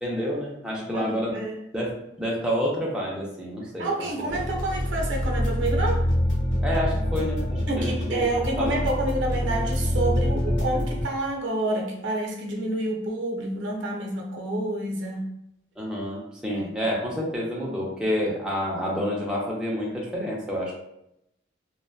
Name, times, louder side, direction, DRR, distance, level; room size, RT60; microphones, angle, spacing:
voice 1, 0.0-1.3 1.7-1.9 2.2-4.1 6.6-8.3 8.6-8.8 15.8-20.7, equal, 5° right, -4 dB, 0.4 m, -28 dB
voice 2, 0.9-1.6 3.8-6.1 7.7-15.3 16.5-16.8, right 2 dB, 85° right, 1 dB, 0.5 m, -28 dB
sound 1, 4.3-11.0, left 1 dB, 80° left, 0.7 m, -26 dB
2.6 x 2.1 x 2.3 m, 0.80 s
head